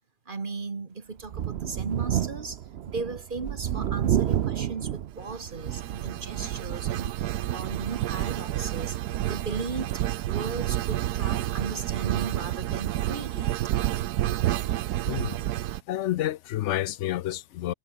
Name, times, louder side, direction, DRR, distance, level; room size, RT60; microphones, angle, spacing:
voice 1, 0.3-13.5, right 4 dB, 35° right, 1.6 m, -37 dB
Thunder, 1.2-6.3 6.8-6.9 8.2-8.3, right 10 dB, 55° right, 0.7 m, -29 dB
sound 1, 5.1-15.8, right 13 dB, 85° right, 1.3 m, -29 dB
voice 2, 15.1-15.4 15.9-17.7, left 13 dB, 70° left, 0.7 m, -29 dB
omnidirectional pair, 1.6 m